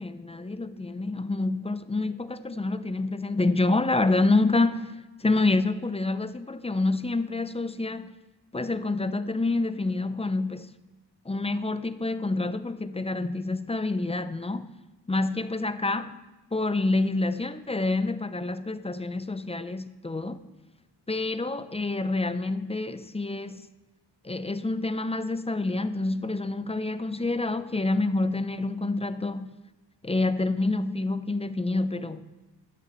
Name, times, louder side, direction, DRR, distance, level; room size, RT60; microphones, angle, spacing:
voice 1, 0.0-8.1 8.5-10.7 11.2-14.7 15.1-16.2 16.5-20.4 21.1-23.7 24.2-29.6 30.0-32.3, left 2 dB, 15° left, 0.6 m, -27 dB
14.0 x 9.8 x 3.1 m
cardioid pair, 60°, 45 cm